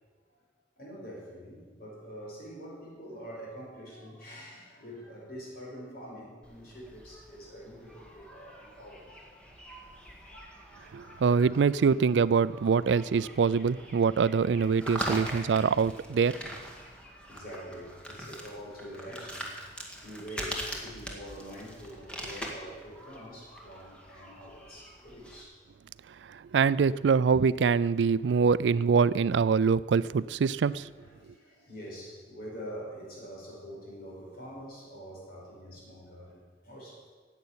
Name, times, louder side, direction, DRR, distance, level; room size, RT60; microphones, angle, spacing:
voice 1, 0.8-9.1 16.9-19.5 20.0-25.6 30.7-37.1, equal, 55° left, -3 dB, 4.8 m, -45 dB
sound 1, 6.4-25.4, right 1 dB, 5° left, 1.9 m, -43 dB
voice 2, 10.9-16.4 26.3-30.9, right 5 dB, 85° right, 18 dB, 0.4 m, -24 dB
11.0 x 8.3 x 9.4 m, 1.4 s
head